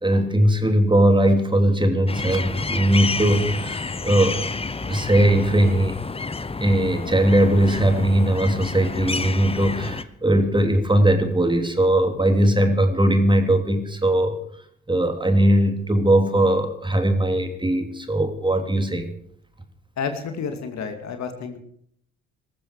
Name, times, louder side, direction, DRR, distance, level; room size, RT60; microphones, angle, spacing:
voice 1, 0.0-4.4 4.9-6.0 6.6-14.4 14.9-19.1, right 1 dB, 15° right, 6 dB, 3.2 m, -19 dB
sound 1, 2.1-10.0, left 3 dB, 15° left, 1.1 m, -29 dB
voice 2, 20.0-21.6, left 5 dB, 50° left, 7 dB, 2.4 m, -30 dB
20.5 x 14.0 x 4.9 m, 0.68 s
figure-of-eight pair, 50°, 35 cm